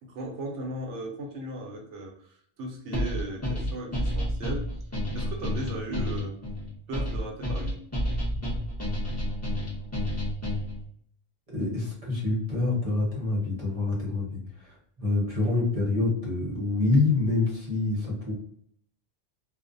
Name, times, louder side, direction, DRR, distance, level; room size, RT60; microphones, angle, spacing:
voice 1, 0.0-4.9 5.1-6.4 6.9-7.9 8.3-8.4, right 1 dB, 80° right, 1 dB, 0.9 m, -37 dB
sound 1, 2.9-10.8, left 1 dB, 15° left, 0.7 m, -30 dB
voice 2, 11.5-18.3, left 3 dB, 35° right, -4 dB, 0.8 m, -26 dB
2.4 x 2.0 x 2.5 m, 0.64 s
omnidirectional pair, 1.2 m